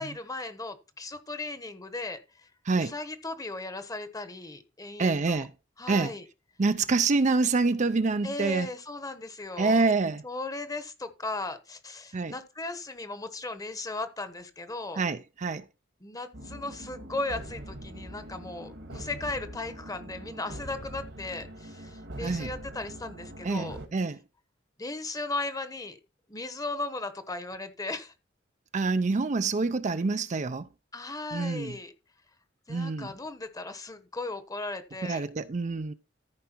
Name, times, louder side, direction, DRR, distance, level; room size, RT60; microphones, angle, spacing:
voice 1, 0.0-2.5 2.8-5.4 5.8-6.2 8.2-9.9 10.2-15.0 16.0-23.8 24.8-26.0 26.3-28.1 30.9-31.9 32.7-35.3, left 2 dB, 20° left, 1.1 m, -37 dB
voice 2, 5.0-5.5 5.9-6.1 6.6-8.7 9.6-10.2 12.1-12.3 15.0-15.6 22.2-22.5 23.4-24.2 28.7-30.7 31.3-31.8 32.7-33.1 35.0-35.9, right 3 dB, 40° right, 0.5 m, -26 dB
sound 1, 16.3-23.9, right 1 dB, 70° right, 1.8 m, -43 dB
14.0 x 4.8 x 4.4 m
head